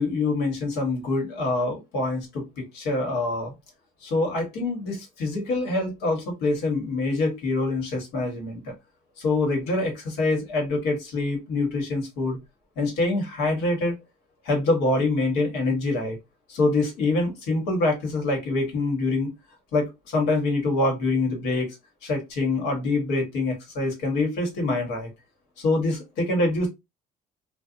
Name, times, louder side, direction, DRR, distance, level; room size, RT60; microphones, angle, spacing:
voice 1, 0.0-3.5 4.0-8.7 9.2-12.4 12.8-13.9 14.4-16.2 16.5-19.3 19.7-21.7 22.0-25.1 25.6-26.7, left 2 dB, 90° left, 2 dB, 1.2 m, -25 dB
2.6 x 2.2 x 2.5 m, 0.21 s
cardioid pair, 110°, 17 cm